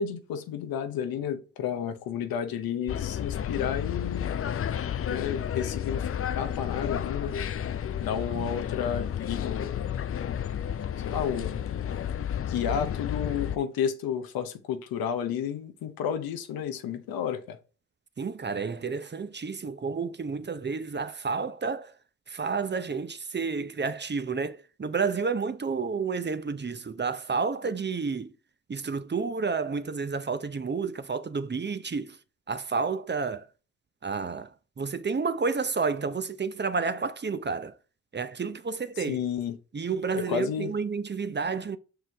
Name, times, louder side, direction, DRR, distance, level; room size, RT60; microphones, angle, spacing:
voice 1, 0.0-4.4 5.0-7.3 8.0-9.9 11.0-11.6 12.5-17.6 39.1-39.6 40.3-40.7, left 8 dB, 80° left, 0.8 m, -31 dB
sound 1, 2.9-13.6, left 9 dB, 40° left, 0.5 m, -31 dB
voice 2, 18.2-21.9 22.3-28.3 28.7-32.2 32.5-33.5 34.0-37.7 38.1-39.2 39.7-41.8, right 5 dB, 30° right, 0.7 m, -30 dB
6.1 x 4.8 x 3.4 m
supercardioid pair, 40°, 35 cm